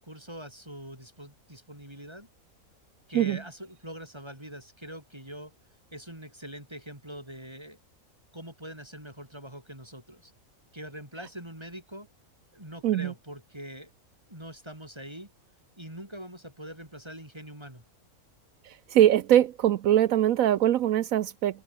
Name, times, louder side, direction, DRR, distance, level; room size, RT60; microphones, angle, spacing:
voice 1, 0.0-2.3 3.1-5.5 5.9-7.8 8.3-10.3 10.7-12.1 12.5-13.9 14.3-15.3 15.8-17.8, equal, 20° right, 4.4 m, -43 dB
voice 2, 18.9-21.6, right 11 dB, 75° right, 1.1 m, -22 dB
omnidirectional pair, 1.5 m